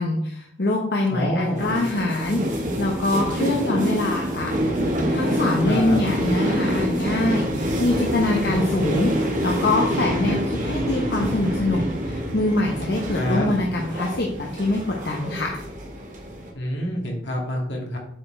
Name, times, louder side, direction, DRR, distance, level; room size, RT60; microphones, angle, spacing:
voice 1, 0.0-4.8 5.1-15.6, left 2 dB, 60° left, -1 dB, 1.0 m, -24 dB
voice 2, 1.1-1.8 5.7-6.0 13.1-13.5 16.5-18.0, left 1 dB, 80° left, -1 dB, 2.2 m, -27 dB
sound 1, 1.5-16.5, equal, 45° right, 1.5 m, -26 dB
8.0 x 4.5 x 4.5 m, 0.72 s
head